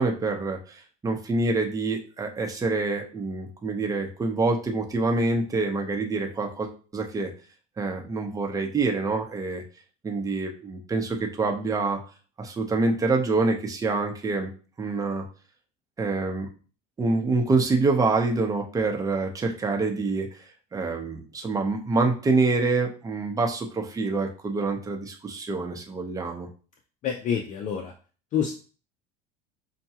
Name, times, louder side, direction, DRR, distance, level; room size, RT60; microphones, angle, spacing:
voice 1, 0.0-7.3 7.8-9.6 10.0-12.0 12.4-14.5 14.8-15.2 16.0-16.5 17.0-20.5 20.7-26.5, right 3 dB, 20° right, 3 dB, 0.7 m, -26 dB
voice 2, 27.0-27.9 28.3-28.5, left 8 dB, 45° left, 4 dB, 0.5 m, -27 dB
5.6 x 2.2 x 2.8 m, 0.38 s
supercardioid pair, 115°, 18 cm